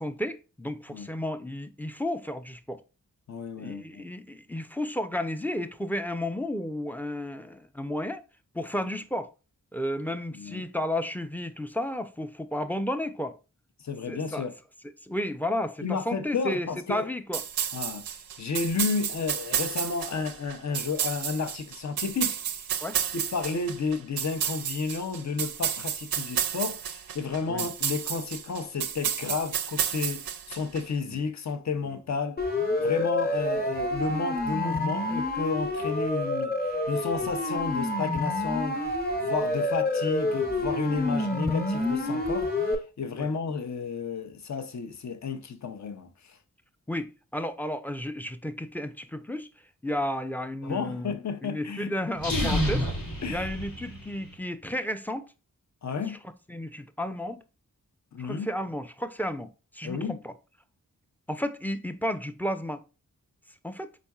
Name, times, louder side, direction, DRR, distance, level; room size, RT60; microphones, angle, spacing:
voice 1, 0.0-2.8 3.6-8.2 8.5-9.3 9.7-13.4 14.1-14.5 15.0-17.4 22.8-23.0 27.5-27.7 31.0-31.2 43.2-43.3 46.9-49.5 49.8-51.1 51.4-52.9 53.3-55.3 56.1-56.2 56.5-57.4 58.2-60.3 61.3-62.8 63.6-63.9, left 1 dB, 5° left, 0.4 m, -32 dB
voice 2, 3.3-4.0 10.3-10.6 13.8-14.5 15.8-17.1 17.7-22.7 23.1-32.5 32.8-38.8 39.2-46.4 50.6-51.9 53.2-53.5 55.8-56.2 58.1-58.5 59.8-60.2, left 5 dB, 55° left, 0.7 m, -32 dB
sound 1, 17.3-30.8, right 9 dB, 90° right, 0.5 m, -31 dB
Siren, 32.4-42.8, left 2 dB, 25° left, 1.1 m, -28 dB
sound 2, 52.1-54.3, equal, 70° left, 1.3 m, -29 dB
4.2 x 3.8 x 2.3 m
cardioid pair, 55°, 34 cm